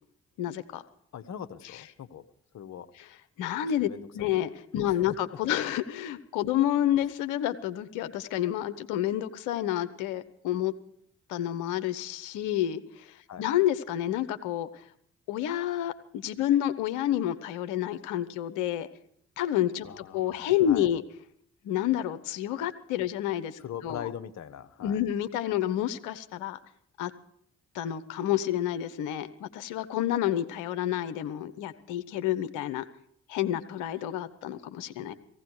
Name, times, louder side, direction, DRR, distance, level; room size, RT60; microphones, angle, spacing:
voice 1, 0.4-0.8 1.7-1.8 2.9-3.1 3.4-10.7 11.3-14.7 15.3-18.9 19.4-21.0 21.6-24.1 24.8-26.6 27.0-27.1 27.7-32.8 33.3-35.1, left 11 dB, 80° left, 11 dB, 1.1 m, -29 dB
voice 2, 1.1-2.2 2.5-2.9 3.8-4.4 4.8-5.0 13.3-13.5 19.8-20.9 23.6-25.0, left 9 dB, 65° left, 11 dB, 1.3 m, -41 dB
18.0 x 16.0 x 4.8 m, 0.66 s
hypercardioid pair, 40°, 30 cm